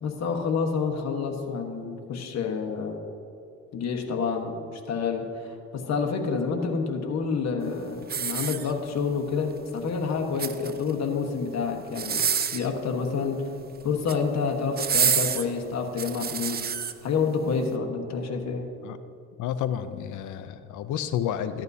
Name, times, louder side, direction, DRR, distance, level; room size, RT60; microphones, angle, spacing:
voice 1, 0.0-3.0 3.7-12.2 12.5-13.5 13.8-16.6 17.0-18.7, left 5 dB, 60° left, 3 dB, 1.3 m, -28 dB
sound 1, 8.0-9.1 10.2-10.9 11.9-12.7 13.8-14.2 14.8-16.9 17.5-17.6, right 7 dB, 30° right, 0.6 m, -28 dB
voice 2, 19.4-21.6, left 10 dB, 80° left, 12 dB, 0.6 m, -30 dB
14.5 x 12.0 x 2.7 m, 2.6 s
cardioid pair, 90°, 30 cm